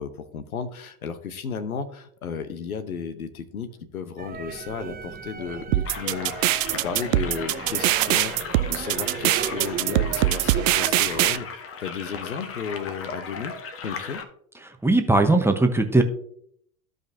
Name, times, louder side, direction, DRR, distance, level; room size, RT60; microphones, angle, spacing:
voice 1, 0.0-8.4 8.7-13.5 13.8-14.2, left 6 dB, 80° left, 12 dB, 1.0 m, -34 dB
sound 1, 4.2-11.4, right 6 dB, 20° right, 1.3 m, -36 dB
sound 2, 5.7-11.4, right 16 dB, 65° right, 0.5 m, -22 dB
sound 3, 5.8-14.2, left 5 dB, 30° left, 1.2 m, -37 dB
voice 2, 14.6-16.0, right 2 dB, 5° right, 5 dB, 0.9 m, -19 dB
14.5 x 5.1 x 2.7 m, 0.65 s
figure-of-eight pair, 80°, 42 cm